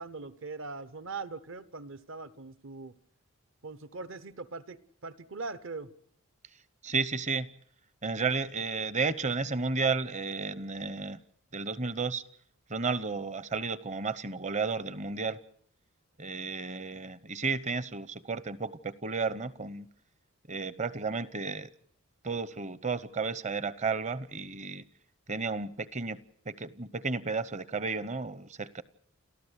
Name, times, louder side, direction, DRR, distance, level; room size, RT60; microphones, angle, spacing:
voice 1, 0.0-2.9 3.6-5.9, right 3 dB, 60° right, 1.0 m, -41 dB
voice 2, 6.8-7.5 8.0-11.2 11.5-12.2 12.7-15.4 16.2-19.9 20.5-21.7 22.2-24.9 25.3-28.8, right 4 dB, 30° right, 0.8 m, -33 dB
30.0 x 14.0 x 8.2 m
head